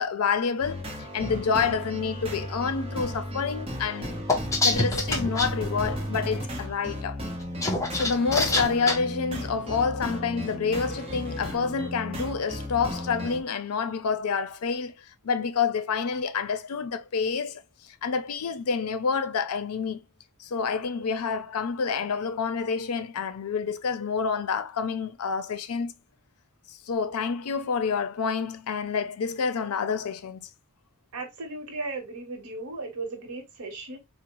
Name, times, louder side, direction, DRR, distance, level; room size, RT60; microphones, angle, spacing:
voice 1, 0.0-4.2 4.6-7.2 7.9-14.9 15.2-17.6 18.0-20.0 20.4-25.9 26.7-30.5, left 5 dB, 85° left, 0.5 m, -28 dB
sound 1, 0.6-13.4, equal, 25° right, 0.8 m, -35 dB
sound 2, 4.3-5.5 7.4-9.0, left 2 dB, 15° left, 0.6 m, -25 dB
voice 2, 31.1-34.0, right 3 dB, 90° right, 0.9 m, -36 dB
3.9 x 2.0 x 2.9 m
head